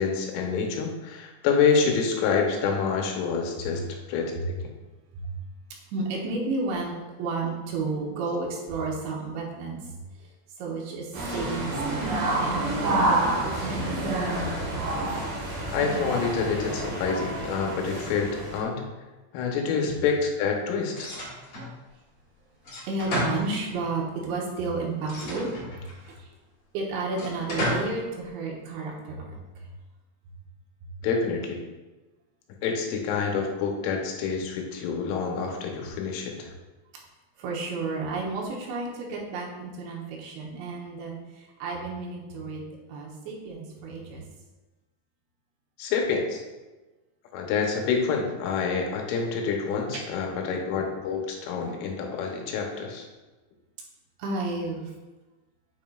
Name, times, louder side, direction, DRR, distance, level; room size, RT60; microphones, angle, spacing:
voice 1, 0.0-3.8 4.1-4.7 15.7-18.8 19.3-21.1 31.0-31.6 32.6-36.5 45.8-46.4 47.3-53.1, left 5 dB, 80° left, 1 dB, 3.4 m, -27 dB
voice 2, 5.9-10.3 10.6-14.1 19.7-19.9 22.9-26.3 26.7-29.7 37.4-44.2 49.9-50.3 54.2-54.9, right 3 dB, 75° right, -2 dB, 3.0 m, -32 dB
sound 1, 11.1-18.6, right 2 dB, 60° right, 2.5 m, -28 dB
sound 2, 20.9-21.7 22.6-24.0 25.0-26.1 27.1-28.0, left 1 dB, 50° left, 2.0 m, -32 dB
9.2 x 5.5 x 2.4 m, 1.2 s
omnidirectional pair, 5.7 m